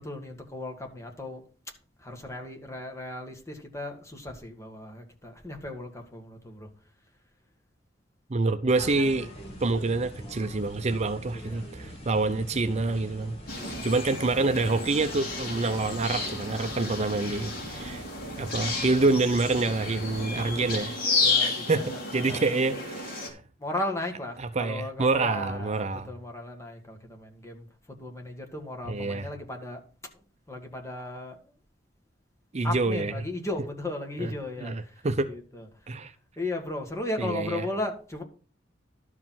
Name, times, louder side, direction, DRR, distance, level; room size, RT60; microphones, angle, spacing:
voice 1, 0.0-1.4 2.0-6.7 11.3-11.7 13.6-13.9 21.2-22.5 23.6-27.7 28.0-29.8 30.1-31.4 32.6-35.7 36.4-38.2, left 2 dB, 15° left, 1.8 m, -36 dB
voice 2, 8.3-9.3 9.6-18.0 18.4-21.0 21.4-21.8 22.1-23.3 24.4-26.1 28.9-29.3 32.5-33.1 34.2-34.3 34.6-35.3 35.9-36.1 37.2-37.6, right 3 dB, 40° right, 0.6 m, -27 dB
sound 1, 8.7-20.8, equal, 35° left, 2.8 m, -43 dB
sound 2, 13.5-23.3, left 3 dB, 55° left, 3.1 m, -32 dB
12.0 x 4.9 x 5.8 m
head